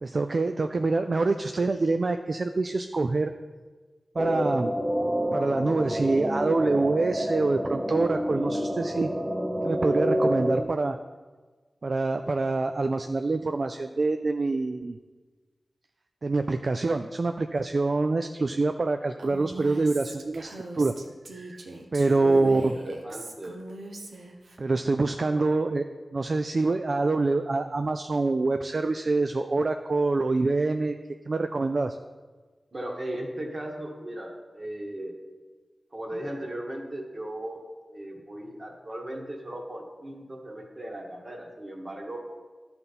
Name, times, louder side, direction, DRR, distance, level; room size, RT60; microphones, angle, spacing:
voice 1, 0.0-3.3 4.2-4.7 5.3-9.1 9.6-11.0 11.8-15.0 16.2-20.9 21.3-21.6 21.9-22.7 24.6-25.8 26.1-31.0 31.3-32.0, right 3 dB, 55° right, 7 dB, 0.3 m, -25 dB
sound 1, 4.2-10.6, equal, 10° right, 0.7 m, -28 dB
Female speech woman speaking, 19.2-24.6, right 2 dB, 90° right, 0.9 m, -41 dB
voice 2, 22.1-23.6 25.2-25.5 32.7-35.1 35.9-42.2, right 1 dB, 40° right, 0 dB, 1.7 m, -37 dB
11.5 x 4.0 x 5.7 m, 1.4 s
wide cardioid pair, 70°, 0 cm